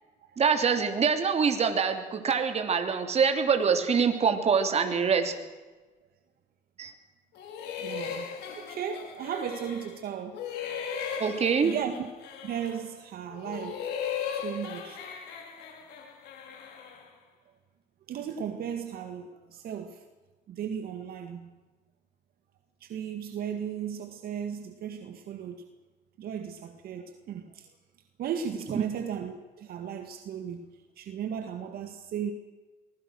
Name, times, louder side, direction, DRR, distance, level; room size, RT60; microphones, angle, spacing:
voice 1, 0.4-5.3 6.8-6.9 11.2-11.7, right 6 dB, 40° right, 3.1 m, -25 dB
sound 1, 7.3-10.0 10.3-12.9 13.3-17.1, left 7 dB, 80° left, 5.5 m, -37 dB
voice 2, 7.8-10.5 11.6-12.1 12.4-13.8 14.3-15.0 18.1-20.0 20.5-21.5 22.8-25.7 26.2-27.7 28.2-30.7 31.0-32.3, right 8 dB, 65° right, 2.0 m, -36 dB
23.5 x 20.0 x 6.3 m
cardioid pair, 110°, 17 cm